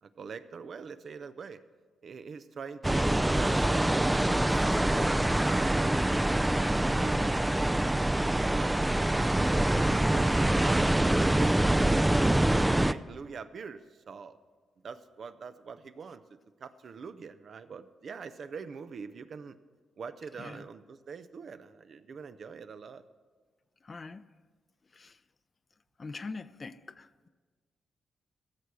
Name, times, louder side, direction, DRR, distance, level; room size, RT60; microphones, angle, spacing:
voice 1, 0.0-1.6 2.0-6.2 6.6-8.7 9.2-10.8 11.2-14.4 14.8-19.6 20.0-23.0, right 5 dB, 60° right, 0.6 m, -44 dB
sound 1, 2.8-12.9, right 1 dB, 15° right, 0.4 m, -25 dB
voice 2, 23.8-24.2 25.0-25.1 26.0-27.3, left 4 dB, 40° left, 0.6 m, -42 dB
15.5 x 6.8 x 6.2 m
supercardioid pair, 50°, 0 cm